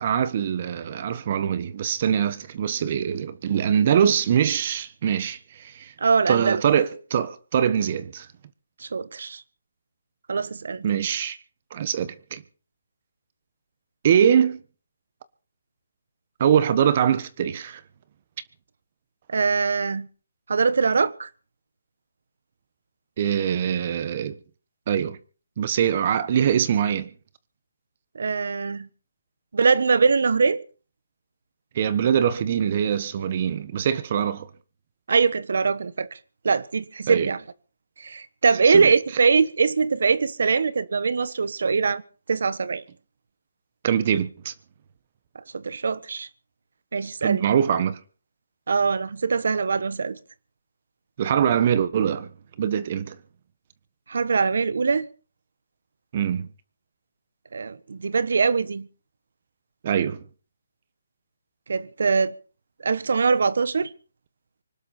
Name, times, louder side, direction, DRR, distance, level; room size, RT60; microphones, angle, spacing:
voice 1, 0.0-5.9 6.3-8.3 10.8-11.4 11.7-12.4 14.0-14.6 16.4-17.8 23.2-24.4 24.9-25.2 25.6-27.1 31.7-34.5 37.1-37.3 38.6-38.9 43.8-44.5 47.2-48.0 51.2-52.3 52.6-53.2 56.1-56.5 59.8-60.2, right 8 dB, 35° right, 1.3 m, -23 dB
voice 2, 6.0-6.6 8.8-9.4 10.3-10.8 19.3-20.1 20.5-21.3 28.1-28.9 29.5-30.6 35.1-36.2 36.4-37.4 38.0-42.0 42.3-42.8 45.3-46.3 46.9-47.5 48.7-50.2 54.1-55.1 57.5-58.9 61.7-62.3 62.8-63.9, right 5 dB, 65° right, 1.2 m, -22 dB
25.5 x 12.0 x 4.4 m
hypercardioid pair, 165°, 0 cm